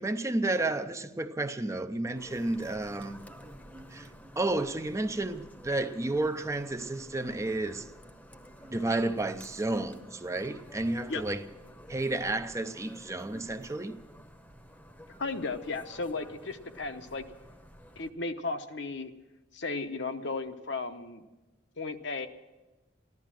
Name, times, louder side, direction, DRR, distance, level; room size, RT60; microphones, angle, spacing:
voice 1, 0.0-3.3 3.9-4.1 4.4-7.9 8.7-11.4 11.9-14.0, right 2 dB, 15° right, 0.5 m, -31 dB
sound 1, 2.1-18.1, equal, 10° left, 0.9 m, -51 dB
voice 2, 15.2-17.2 18.0-19.1 19.5-21.2 21.8-22.3, left 3 dB, 65° left, 0.9 m, -35 dB
14.5 x 12.0 x 7.5 m
head